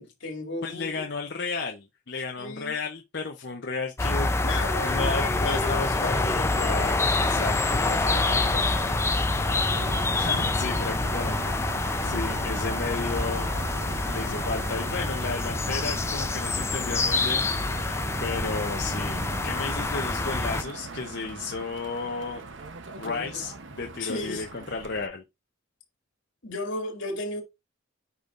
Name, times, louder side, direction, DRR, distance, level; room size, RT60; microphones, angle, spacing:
voice 1, 0.0-1.1 2.4-2.8 4.4-6.6 7.2-7.5 7.8-8.8 12.0-12.4 23.0-23.4 24.0-24.5 26.4-27.4, left 2 dB, 80° left, 2.4 m, -35 dB
voice 2, 0.6-4.3 4.8-7.8 10.1-11.5 12.0-13.5 14.1-22.4 23.0-25.2, left 4 dB, 55° left, 0.7 m, -33 dB
sound 1, 4.0-20.6, left 2 dB, 15° left, 0.4 m, -26 dB
Motor vehicle (road), 6.6-25.1, right 3 dB, 75° right, 0.9 m, -39 dB
9.4 x 5.2 x 2.5 m
head